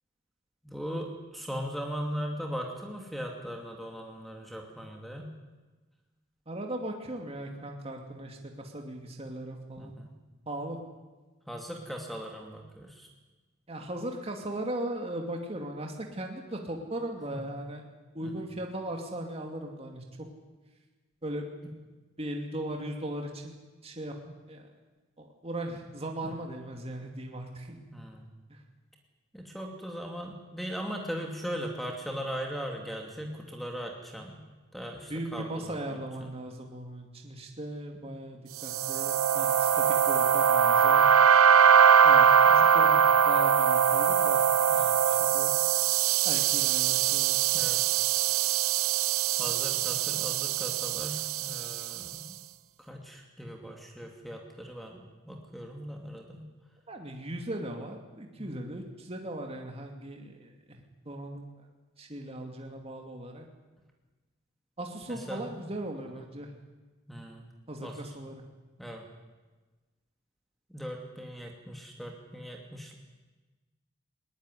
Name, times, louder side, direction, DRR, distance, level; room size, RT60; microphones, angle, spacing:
voice 1, 0.6-5.3 9.8-10.1 11.5-13.1 18.2-18.3 26.2-26.3 27.9-28.2 29.3-34.4 34.7-36.0 42.4-42.9 44.7-45.0 47.5-47.8 49.4-52.4 52.8-56.4 58.4-58.7 65.3-65.6 67.1-67.5 67.8-68.0 68.8-69.0 70.7-72.9, equal, ahead, 1 dB, 2.5 m, -39 dB
voice 2, 6.5-9.9 10.5-10.8 13.7-17.9 18.1-20.0 21.2-21.5 22.2-23.6 23.8-24.7 25.2-27.9 28.5-28.6 35.1-41.1 42.0-42.3 42.5-44.5 45.1-45.5 46.2-47.6 56.9-61.7 62.0-63.5 64.8-66.5 67.7-68.3, right 1 dB, 30° right, 2 dB, 2.5 m, -38 dB
sound 1, 38.6-52.0, right 8 dB, 85° right, 0.8 m, -22 dB
21.0 x 19.5 x 9.9 m, 1.2 s
head